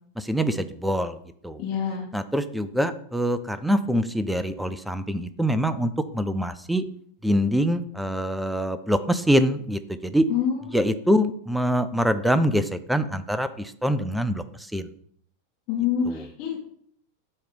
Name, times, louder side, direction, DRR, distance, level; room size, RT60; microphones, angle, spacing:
voice 1, 0.2-1.2 1.4-1.6 2.1-6.8 7.2-10.3 10.7-14.4 14.7-14.9 16.1-16.2, equal, ahead, 13 dB, 0.4 m, -24 dB
voice 2, 1.6-2.0 10.3-10.9 15.7-16.6, left 8 dB, 40° left, -4 dB, 1.4 m, -27 dB
8.4 x 3.2 x 5.2 m, 0.64 s
figure-of-eight pair, 90°, 0 cm